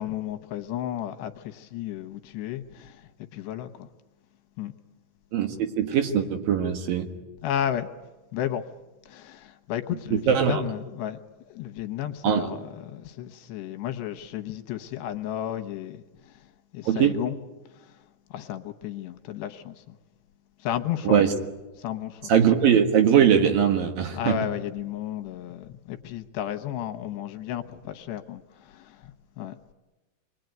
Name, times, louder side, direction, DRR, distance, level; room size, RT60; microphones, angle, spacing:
voice 1, 0.0-3.0 3.3-3.9 4.6-4.7 7.4-7.9 8.3-8.6 9.1-11.2 11.5-16.0 16.7-17.4 17.8-17.9 18.3-20.0 20.6-21.2 21.8-22.3 24.1-29.6, left 11 dB, 80° left, 7 dB, 3.3 m, -33 dB
voice 2, 5.3-7.1 10.1-10.6 12.2-12.5 16.9-17.1 21.0-21.3 22.3-24.4, right 8 dB, 65° right, 6 dB, 3.2 m, -21 dB
27.5 x 21.5 x 9.3 m, 1.1 s
omnidirectional pair, 4.8 m